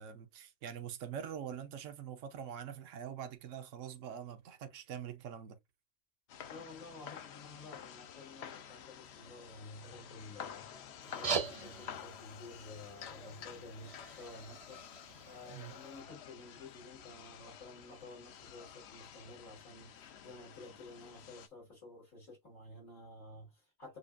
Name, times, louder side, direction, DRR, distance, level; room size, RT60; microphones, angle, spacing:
voice 1, 0.0-5.6 15.5-15.7, right 8 dB, 75° right, 1.1 m, -44 dB
sound 1, 6.3-21.5, left 8 dB, 60° left, 0.8 m, -50 dB
voice 2, 6.5-10.7 11.0-14.8 15.3-24.0, left 2 dB, 85° left, 3.5 m, -52 dB
sound 2, 11.0-16.0, right 5 dB, 35° right, 0.7 m, -42 dB
6.6 x 2.4 x 2.4 m
omnidirectional pair, 1.3 m